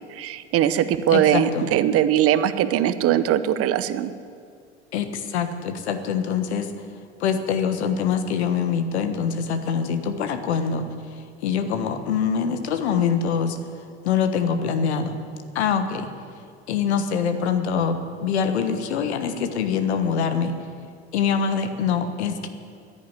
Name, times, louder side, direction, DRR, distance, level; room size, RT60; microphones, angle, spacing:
voice 1, 0.1-4.1, right 11 dB, 45° right, 13 dB, 0.9 m, -21 dB
voice 2, 1.1-1.7 4.9-6.7 7.2-10.9 11.4-13.6 14.0-15.2 15.5-16.1 16.7-20.5 21.1-22.5, left 6 dB, 75° left, 8 dB, 1.4 m, -24 dB
11.0 x 9.9 x 10.0 m, 2.2 s
hypercardioid pair, 75°, 33 cm